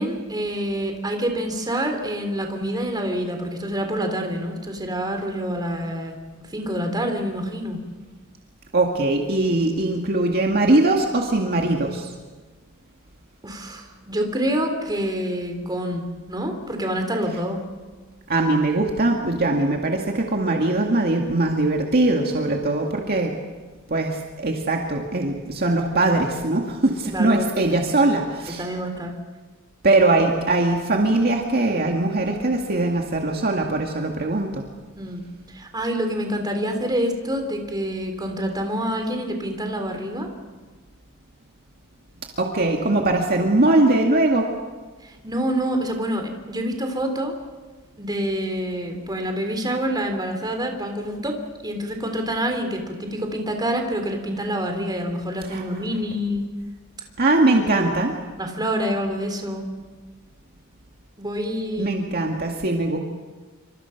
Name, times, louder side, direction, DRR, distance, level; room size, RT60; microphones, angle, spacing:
voice 1, 0.0-6.2 6.5-7.8 13.4-17.6 27.1-27.6 28.6-29.1 35.0-35.2 35.5-40.3 45.0-47.3 48.0-51.4 51.6-56.5 58.4-59.7 61.2-61.9, equal, 20° right, 4 dB, 3.6 m, -27 dB
voice 2, 8.7-12.1 18.3-23.3 23.9-28.7 29.8-34.7 42.4-44.5 55.5-55.6 57.2-58.1 61.8-63.0, right 2 dB, 45° right, 1 dB, 2.1 m, -21 dB
27.5 x 25.5 x 6.0 m, 1.3 s
head